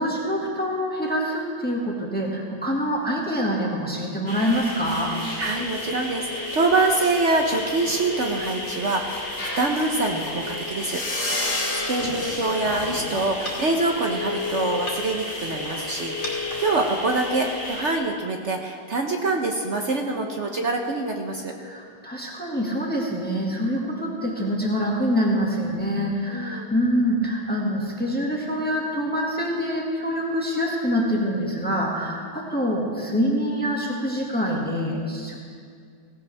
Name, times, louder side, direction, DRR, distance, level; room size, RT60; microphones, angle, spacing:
voice 1, 0.0-5.1 21.6-35.4, equal, 5° left, -2 dB, 1.7 m, -25 dB
sound 1, 4.3-17.9, left 2 dB, 35° left, 2.7 m, -31 dB
voice 2, 5.4-11.0 11.4-21.5 26.3-26.7, right 2 dB, 50° right, 3 dB, 0.9 m, -25 dB
17.0 x 16.5 x 3.4 m, 2.1 s
omnidirectional pair, 2.1 m